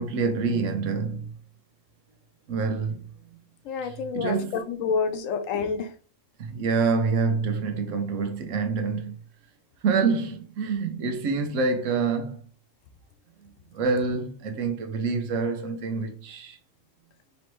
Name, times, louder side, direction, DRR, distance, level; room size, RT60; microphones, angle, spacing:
voice 1, 0.0-1.3 2.5-3.1 3.8-4.6 6.4-9.2 9.8-12.4 13.4-16.6, right 4 dB, 75° right, 1.1 m, -27 dB
voice 2, 3.6-5.9, left 5 dB, 85° left, 1.0 m, -28 dB
4.3 x 3.0 x 3.1 m
omnidirectional pair, 1.3 m